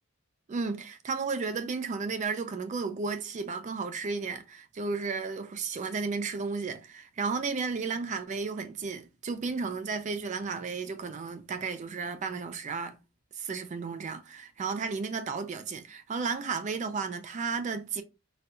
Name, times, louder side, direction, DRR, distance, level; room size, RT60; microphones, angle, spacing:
voice 1, 0.5-12.9 13.4-18.0, right 4 dB, 35° right, 0.3 m, -33 dB
4.0 x 2.2 x 2.6 m
head